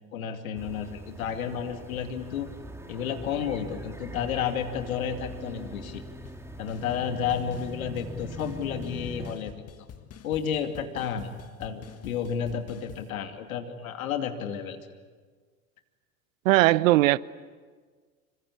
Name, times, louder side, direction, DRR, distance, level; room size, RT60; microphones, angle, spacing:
voice 1, 0.1-2.5 2.9-6.0 6.6-9.6 10.2-11.3 11.6-14.8, left 7 dB, 75° left, 2.7 m, -31 dB
sound 1, 0.6-9.3, equal, 5° right, 3.1 m, -42 dB
sound 2, 6.2-6.4 6.7-7.0 7.3-13.1, left 8 dB, 35° left, 1.9 m, -47 dB
voice 2, 16.4-17.2, right 18 dB, 70° right, 0.8 m, -19 dB
27.0 x 25.0 x 8.5 m
hypercardioid pair, 75°, 42 cm